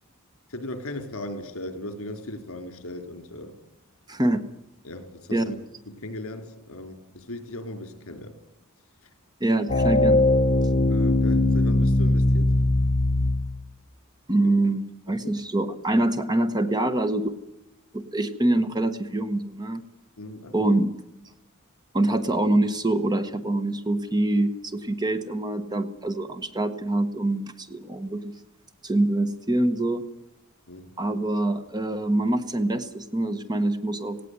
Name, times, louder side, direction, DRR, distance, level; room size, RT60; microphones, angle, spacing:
voice 1, 0.5-3.5 4.8-5.6 5.9-8.3 9.0-9.1 10.9-12.5 14.4-14.5 15.2-15.3 20.2-20.8 30.7-30.9, left 1 dB, 65° left, 7 dB, 3.9 m, -37 dB
voice 2, 4.1-4.4 5.3-5.4 9.4-10.3 14.3-14.8 15.1-17.3 17.9-19.8 20.5-20.9 21.9-28.4 28.8-30.0 31.0-34.2, right 1 dB, 20° right, 10 dB, 1.1 m, -25 dB
sound 1, 9.7-13.6, left 2 dB, 40° left, 1.0 m, -20 dB
18.5 x 17.0 x 9.6 m, 0.92 s
head